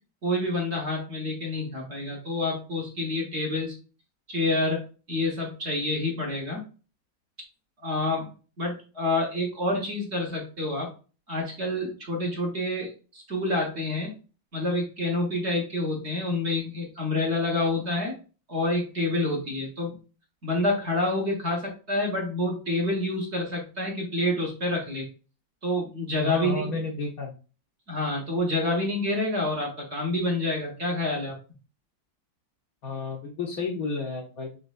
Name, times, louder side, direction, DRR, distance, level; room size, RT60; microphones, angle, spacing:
voice 1, 0.2-3.7 4.3-6.6 7.8-8.3 8.6-10.9 11.3-14.1 14.5-18.2 18.5-20.0 20.4-25.1 25.6-26.7 27.9-31.3, left 2 dB, 40° right, -1 dB, 1.3 m, -28 dB
voice 2, 26.2-27.3 32.8-34.6, left 3 dB, 60° left, 2 dB, 1.0 m, -31 dB
5.2 x 4.1 x 2.4 m, 0.35 s
omnidirectional pair, 2.0 m